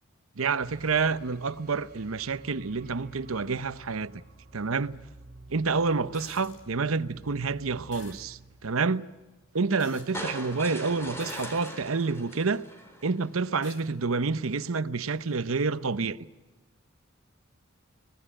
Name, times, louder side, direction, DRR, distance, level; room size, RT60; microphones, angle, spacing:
voice 1, 0.4-4.2 4.5-5.0 5.5-9.1 9.5-12.6 13.0-16.2, right 4 dB, 85° right, 0.9 m, -28 dB
sound 1, 0.6-9.7, right 2 dB, 45° right, 6.2 m, -52 dB
sound 2, 6.1-6.6 7.9-8.2 9.8-10.4 11.2-11.9 12.6-12.7 13.6-13.8 15.3-15.4, left 4 dB, 60° left, 4.2 m, -48 dB
sound 3, 10.1-13.4, equal, 10° left, 4.1 m, -40 dB
24.0 x 19.0 x 8.9 m
head